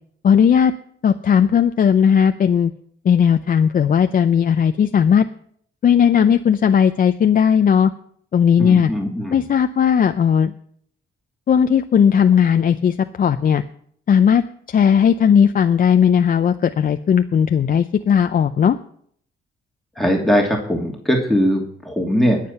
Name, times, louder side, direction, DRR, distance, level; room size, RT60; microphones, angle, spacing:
voice 1, 0.2-0.7 1.0-2.7 3.0-5.2 5.8-7.9 8.3-8.9 9.3-10.5 11.5-13.6 14.1-18.8, left 7 dB, 45° left, 8 dB, 0.6 m, -16 dB
voice 2, 8.6-9.4 20.0-22.4, equal, ahead, 0 dB, 2.6 m, -20 dB
20.5 x 7.6 x 5.6 m, 0.64 s
cardioid pair, 90°, 20 cm